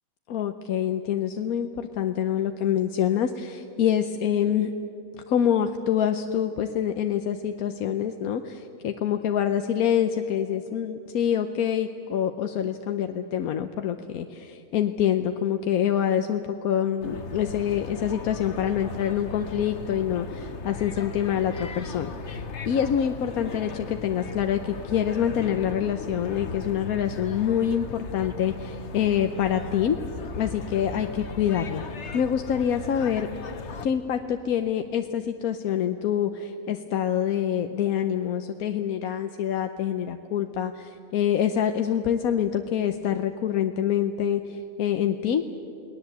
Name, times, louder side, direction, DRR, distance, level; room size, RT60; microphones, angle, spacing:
voice 1, 0.3-4.7 5.3-22.4 22.7-30.0 30.4-31.8 32.1-33.3 33.8-45.5, left 9 dB, 85° left, 7 dB, 1.3 m, -26 dB
sound 1, 17.0-33.9, left 4 dB, 55° left, 1.4 m, -37 dB
29.5 x 19.5 x 8.1 m, 2.7 s
omnidirectional pair, 1.5 m